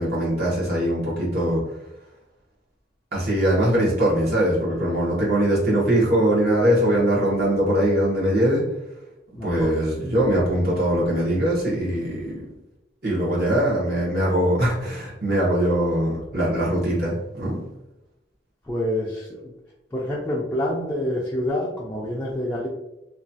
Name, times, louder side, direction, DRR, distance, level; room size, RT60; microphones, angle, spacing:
voice 1, 0.0-1.6 3.1-8.6 9.4-12.4 13.0-17.6, right 1 dB, 60° right, -5 dB, 1.1 m, -21 dB
voice 2, 9.4-9.8 18.7-19.5 19.9-22.7, left 1 dB, 10° left, -5 dB, 0.4 m, -27 dB
3.0 x 2.3 x 2.7 m, 0.92 s
head